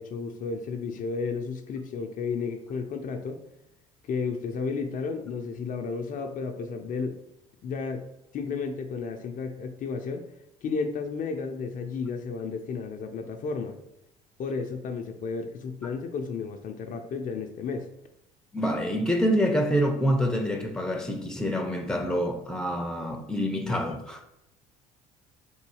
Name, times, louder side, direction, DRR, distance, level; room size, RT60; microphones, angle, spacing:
voice 1, 0.0-3.4 4.0-7.2 7.6-8.0 8.3-10.2 10.6-13.8 14.4-17.9, left 5 dB, 50° left, 0.6 m, -32 dB
voice 2, 18.5-24.2, equal, 5° left, 0.8 m, -26 dB
3.8 x 2.7 x 4.6 m
hypercardioid pair, 65°, 18 cm